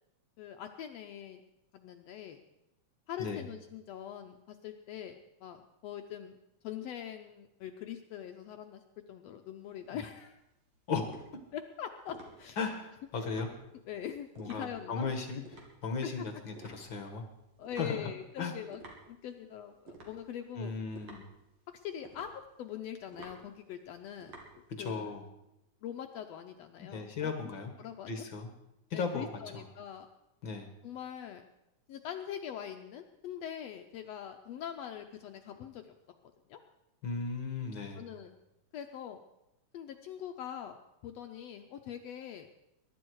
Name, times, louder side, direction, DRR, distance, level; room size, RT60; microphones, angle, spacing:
voice 1, 0.4-1.4 1.7-2.4 3.1-6.4 6.6-8.8 9.1-10.4 11.5-12.6 13.2-13.3 13.9-15.1 15.4-15.5 16.0-16.1 17.6-20.7 21.7-25.1 25.8-27.5 27.8-28.1 28.9-30.1 30.8-31.4 31.9-35.8 36.5-36.6 38.0-38.4 38.7-39.2 39.7-40.8 41.0-42.5, left 9 dB, 70° left, 5 dB, 1.7 m, -43 dB
sound 1, 9.6-25.1, right 2 dB, 55° right, 3.7 m, -54 dB
voice 2, 12.6-13.5 14.4-15.4 15.8-17.2 17.8-18.1 18.4-18.5 20.6-21.3 24.8-25.3 26.8-27.7 28.1-28.5 28.9-29.6 30.4-30.7 37.0-38.0, left 4 dB, 50° left, 6 dB, 1.7 m, -36 dB
21.5 x 11.5 x 4.7 m, 0.88 s
omnidirectional pair, 3.3 m